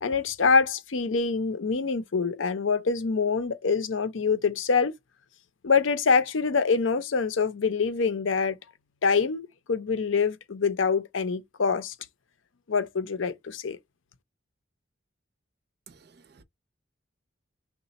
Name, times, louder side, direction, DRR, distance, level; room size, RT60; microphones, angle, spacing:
voice 1, 0.0-4.9 5.6-8.6 9.0-11.9 12.7-13.8, left 5 dB, 75° left, 0.6 m, -25 dB
voice 2, 15.9-16.4, right 6 dB, 50° right, 0.5 m, -54 dB
4.0 x 2.1 x 4.0 m
head